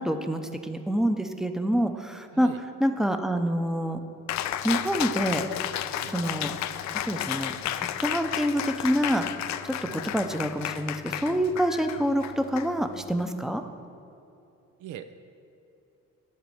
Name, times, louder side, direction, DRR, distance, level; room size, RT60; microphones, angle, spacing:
voice 1, 0.0-2.5 2.8-4.0 4.6-5.4 6.0-6.5 6.9-9.2 9.6-13.6, equal, ahead, 6 dB, 0.6 m, -27 dB
Cheering, 4.3-13.2, left 11 dB, 65° left, 0.4 m, -33 dB
voice 2, 14.8-15.1, right 11 dB, 85° right, 9 dB, 0.5 m, -41 dB
10.5 x 4.1 x 7.7 m, 2.8 s
cardioid pair, 90°, 30 cm